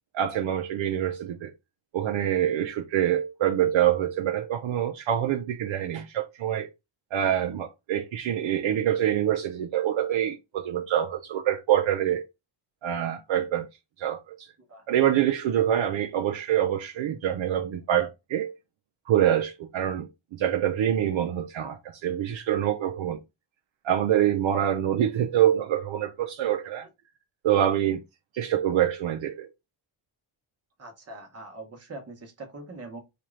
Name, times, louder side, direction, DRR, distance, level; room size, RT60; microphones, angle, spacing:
voice 1, 0.1-1.5 1.9-6.7 7.1-12.2 12.8-13.7 14.0-14.5 14.9-18.5 19.1-23.2 23.8-26.9 27.4-28.0 28.3-29.5, right 10 dB, 70° right, 0.6 m, -25 dB
voice 2, 30.8-33.0, right 2 dB, 30° right, 1.0 m, -42 dB
4.3 x 2.5 x 3.1 m
wide cardioid pair, 145°, 49 cm